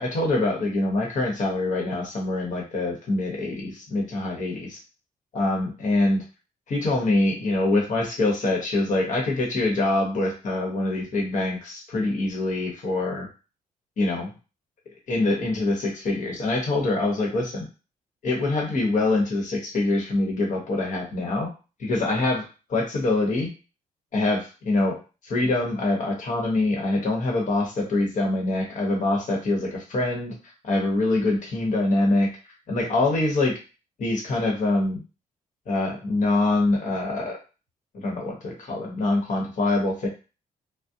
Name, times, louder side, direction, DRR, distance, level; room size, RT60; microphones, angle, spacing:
voice 1, 0.0-4.7 5.3-6.2 6.7-13.3 14.0-14.3 15.1-17.7 18.2-21.5 21.8-23.5 24.1-30.3 30.6-32.3 32.7-33.5 34.0-35.0 35.7-37.4 38.0-40.1, left 2 dB, 55° left, 0 dB, 1.0 m, -24 dB
2.4 x 2.0 x 2.7 m, 0.32 s
cardioid pair, 85°, 15 cm